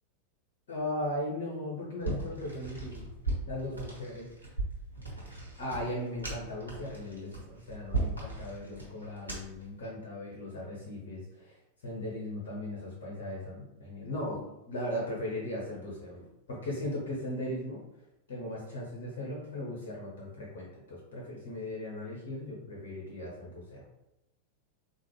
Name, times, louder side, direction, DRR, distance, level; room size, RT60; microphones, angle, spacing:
voice 1, 0.7-3.0 3.5-4.3 5.6-11.6 11.8-17.8 18.3-23.8, left 1 dB, 55° left, -4 dB, 0.9 m, -38 dB
sound 1, 2.0-9.7, right 3 dB, 80° right, 1.1 m, -37 dB
3.8 x 2.4 x 3.1 m, 0.92 s
figure-of-eight pair, 90°, 0 cm